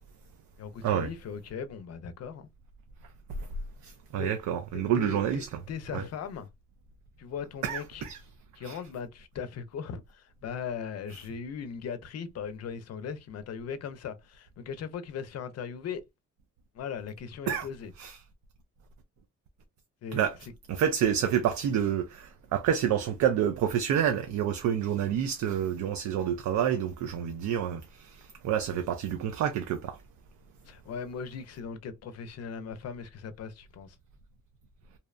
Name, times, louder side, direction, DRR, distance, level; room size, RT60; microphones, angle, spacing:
voice 1, 0.6-2.5 4.1-4.3 4.7-6.5 7.2-8.1 8.5-16.0 16.7-17.9 20.0-20.2 30.7-34.0, left 6 dB, 55° left, 0.5 m, -38 dB
voice 2, 3.8-5.6 5.9-6.0 7.6-8.2 8.6-8.8 17.5-17.7 18.0-18.2 20.1-20.4 20.7-30.0, right 9 dB, 70° right, 0.5 m, -28 dB
2.7 x 2.0 x 2.4 m
cardioid pair, 90°, 30 cm